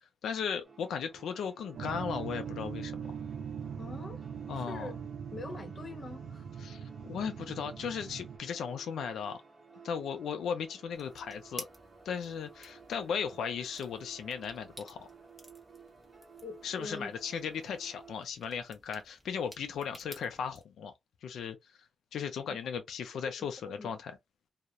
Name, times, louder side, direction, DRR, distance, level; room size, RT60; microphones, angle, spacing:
voice 1, 0.2-3.0 4.5-4.9 6.6-9.4 9.8-11.7 12.1-15.1 16.6-20.9 21.2-24.2, left 7 dB, 90° left, 0.3 m, -37 dB
sound 1, 0.6-18.2, right 5 dB, 30° right, 1.0 m, -55 dB
sound 2, 1.7-8.4, right 7 dB, 80° right, 0.4 m, -41 dB
voice 2, 3.8-4.3 4.5-5.0 5.3-6.5 16.4-17.1 22.5-22.6 23.8-23.9, left 2 dB, 35° left, 0.8 m, -43 dB
sound 3, 10.9-20.6, equal, ahead, 0.7 m, -53 dB
2.3 x 2.0 x 2.7 m
cardioid pair, 115°, 0 cm